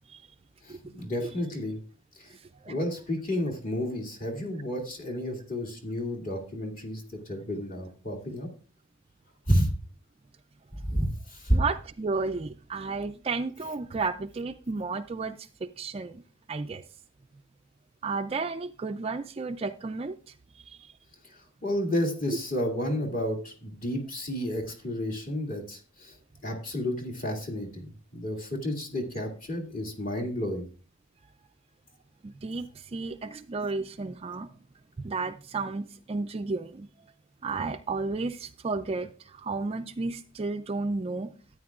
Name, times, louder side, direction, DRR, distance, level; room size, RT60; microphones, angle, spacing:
voice 1, 0.6-1.8 2.2-2.4 2.7-8.5 9.5-9.7 10.8-11.6 21.6-26.1 26.4-30.7, equal, 40° left, 2.2 m, -31 dB
voice 2, 11.5-16.2 16.5-16.8 18.0-20.2 20.7-20.8 32.2-34.5 35.0-36.9 37.4-41.3, right 3 dB, 25° right, 0.3 m, -32 dB
13.5 x 9.3 x 2.4 m
head